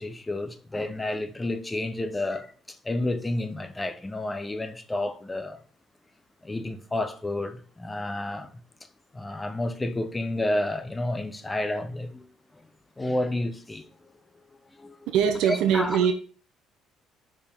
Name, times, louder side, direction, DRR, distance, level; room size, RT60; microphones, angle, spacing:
voice 1, 0.0-5.6 6.4-8.5 9.1-12.3 13.0-13.9 14.8-15.0 15.5-16.0, left 1 dB, 15° left, 0.8 m, -30 dB
voice 2, 15.1-16.1, right 8 dB, 80° right, 1.0 m, -22 dB
5.0 x 4.8 x 5.5 m
cardioid pair, 125°, 0 cm